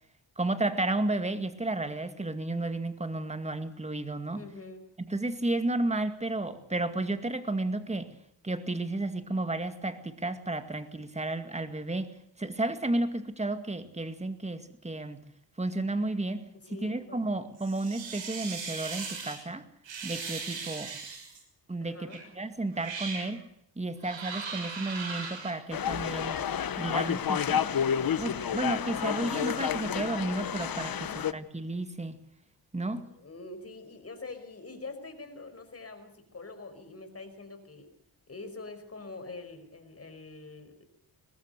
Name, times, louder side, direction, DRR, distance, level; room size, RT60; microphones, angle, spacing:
voice 1, 0.4-4.5 5.1-8.1 8.4-15.3 15.6-16.5 16.8-19.7 20.0-20.9 21.7-23.4 23.8-26.5 26.8-27.8 28.2-32.2 32.7-33.1, right 2 dB, 15° right, 2.2 m, -32 dB
voice 2, 4.4-4.8 16.6-17.3 21.8-22.2 30.9-31.2 33.0-37.9 38.3-40.8, left 3 dB, 35° left, 5.3 m, -45 dB
sound 1, 17.6-19.4 19.8-21.4 22.1-22.3 22.7-23.3 24.0-25.5, right 5 dB, 85° right, 6.4 m, -38 dB
sound 2, 25.7-31.3, left 8 dB, 50° left, 1.1 m, -30 dB
23.0 x 19.5 x 6.8 m
cardioid pair, 100°, 44 cm